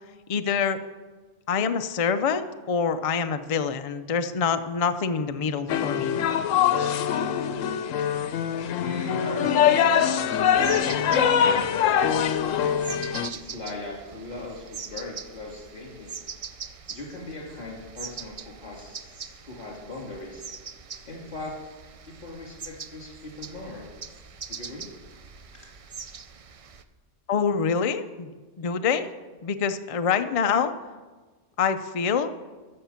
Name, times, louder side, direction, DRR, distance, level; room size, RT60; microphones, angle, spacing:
voice 1, 0.3-0.8 1.5-6.1 27.3-29.1 29.4-30.7 31.6-32.3, left 6 dB, 60° left, 9 dB, 0.3 m, -26 dB
sound 1, 5.7-13.3, left 8 dB, 90° left, 1.0 m, -23 dB
voice 2, 8.8-9.9 10.5-12.7 13.3-16.1 16.9-20.4 21.0-21.6 22.1-23.9 24.5-24.9, left 2 dB, 40° left, -2 dB, 3.0 m, -38 dB
sound 2, 10.4-26.8, right 6 dB, 60° right, 0.3 m, -42 dB
14.0 x 6.5 x 5.8 m, 1.3 s
omnidirectional pair, 1.3 m